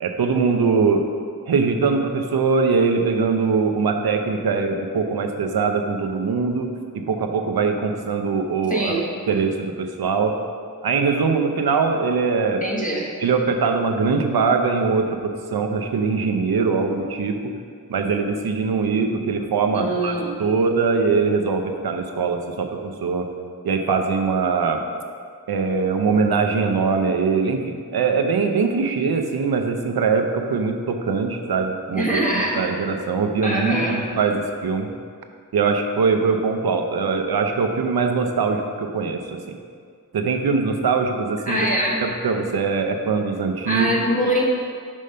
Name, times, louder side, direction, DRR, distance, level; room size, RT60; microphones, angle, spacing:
voice 1, 0.0-1.1 1.5-8.9 9.3-10.4 10.8-12.7 13.2-17.5 17.9-23.3 23.6-24.8 25.5-34.9 35.5-39.6 40.1-41.7 42.0-43.9, right 4 dB, 75° right, 4 dB, 0.7 m, -22 dB
voice 2, 8.7-9.1 12.6-13.1 19.7-20.3 31.9-32.6 33.4-34.0 41.5-42.0 43.7-44.4, right 1 dB, 20° left, -4 dB, 1.2 m, -23 dB
5.3 x 5.0 x 5.5 m, 2.1 s
wide cardioid pair, 110°, 37 cm